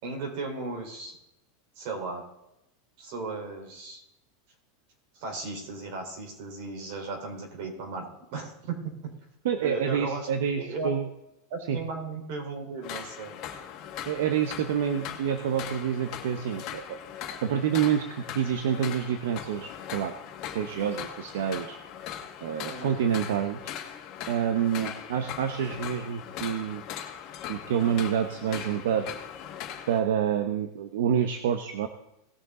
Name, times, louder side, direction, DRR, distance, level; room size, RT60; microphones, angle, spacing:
voice 1, 0.0-1.2 1.8-2.2 3.0-4.0 5.2-9.1 9.6-10.3 10.6-10.9 11.5-13.3 22.6-23.0 24.7-24.9, right 3 dB, 50° right, 2 dB, 4.1 m, -36 dB
voice 2, 9.4-11.1 11.7-11.8 14.1-20.1 20.5-21.8 22.4-23.6 24.3-26.8 27.5-29.1 29.9-31.9, right 8 dB, 75° right, 7 dB, 0.9 m, -28 dB
sound 1, 12.8-30.0, left 9 dB, 40° left, 1.8 m, -40 dB
19.0 x 6.8 x 3.9 m, 0.86 s
supercardioid pair, 160°, 0 cm